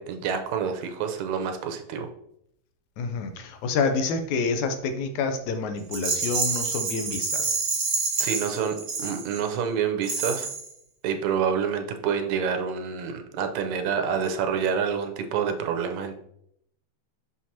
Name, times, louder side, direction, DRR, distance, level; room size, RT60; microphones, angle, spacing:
voice 1, 0.0-2.1 8.2-10.5 11.0-16.2, right 7 dB, 90° right, 5 dB, 2.1 m, -27 dB
voice 2, 3.0-7.5, left 4 dB, 85° left, 7 dB, 2.1 m, -28 dB
Rattle, 5.9-9.5 10.0-10.7, right 4 dB, 45° right, 2.5 m, -28 dB
6.1 x 5.9 x 2.8 m, 0.73 s
omnidirectional pair, 3.3 m